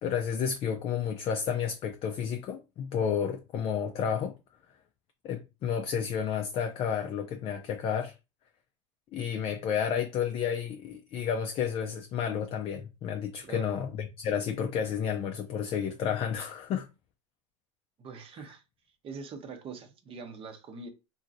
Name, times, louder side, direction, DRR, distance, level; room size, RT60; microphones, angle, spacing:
voice 1, 0.0-4.3 5.2-8.1 9.1-16.9, left 8 dB, 35° left, 0.4 m, -31 dB
voice 2, 13.4-13.8 18.0-18.6 19.0-20.9, right 5 dB, 35° right, 0.8 m, -43 dB
2.9 x 2.7 x 2.5 m
supercardioid pair, 105°, 16 cm